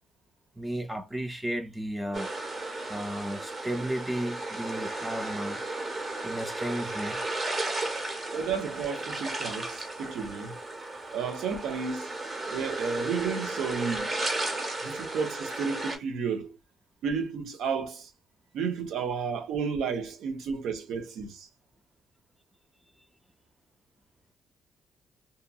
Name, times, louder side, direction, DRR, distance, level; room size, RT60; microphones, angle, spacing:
voice 1, 0.6-2.3 2.9-5.6 6.2-7.2, right 1 dB, 10° right, 0.4 m, -34 dB
sound 1, 2.1-16.0, right 2 dB, 35° right, 0.9 m, -34 dB
voice 2, 8.3-10.6 11.1-12.1 12.5-14.2 14.8-16.6 17.0-18.1 18.5-21.5, right 6 dB, 85° right, 0.6 m, -32 dB
2.8 x 2.6 x 2.3 m
cardioid pair, 90°, 0 cm